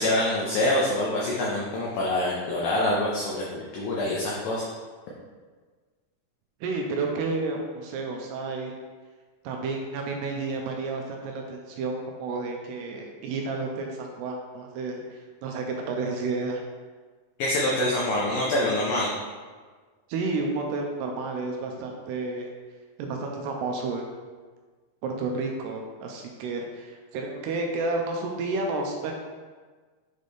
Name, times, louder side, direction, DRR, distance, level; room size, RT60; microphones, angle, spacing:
voice 1, 0.0-4.6 17.4-19.1, left 1 dB, 85° left, -5 dB, 1.9 m, -25 dB
voice 2, 6.6-8.7 9.4-11.9 12.2-16.6 20.1-22.5 23.0-24.2 25.0-29.1, right 3 dB, 85° right, 1 dB, 2.5 m, -31 dB
7.3 x 3.9 x 3.4 m, 1.4 s
omnidirectional pair, 5.0 m